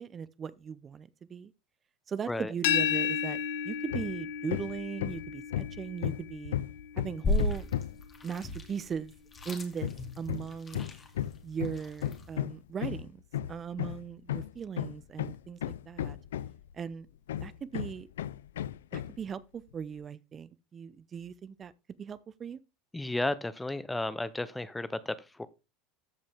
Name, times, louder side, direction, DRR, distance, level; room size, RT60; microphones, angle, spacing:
voice 1, 0.0-1.5 2.1-3.4 3.6-6.5 7.0-7.7 8.2-9.1 9.4-9.9 10.2-10.9 11.4-13.2 13.5-16.2 16.7-17.1 17.4-18.1 18.9-21.7 22.0-22.6, right 7 dB, 30° right, 0.7 m, -38 dB
sound 1, 2.6-8.4, left 8 dB, 70° left, 1.2 m, -34 dB
Hammer, 3.9-4.2 4.5-8.1 9.8-16.7 17.3-19.2, left 11 dB, 90° left, 0.4 m, -35 dB
sound 2, 7.2-12.4, left 2 dB, 25° left, 2.3 m, -34 dB
voice 2, 22.9-25.5, left 2 dB, 10° left, 0.7 m, -33 dB
14.0 x 5.2 x 3.5 m
supercardioid pair, 105°, 0 cm